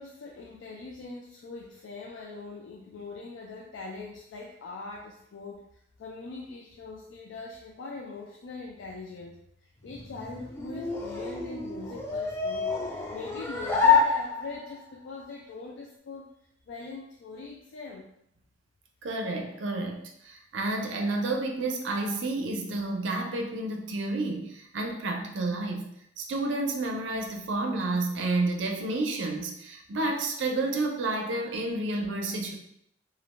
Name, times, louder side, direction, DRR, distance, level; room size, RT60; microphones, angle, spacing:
voice 1, 0.0-5.6 6.0-9.4 9.8-12.7 13.1-16.3 16.7-18.1, left 3 dB, 90° left, -1 dB, 0.3 m, -41 dB
sound 1, 9.8-14.8, left 5 dB, 15° left, 0.3 m, -27 dB
voice 2, 19.0-25.9 26.2-32.6, right 2 dB, 85° right, 3 dB, 0.5 m, -30 dB
2.4 x 2.1 x 3.0 m, 0.74 s
head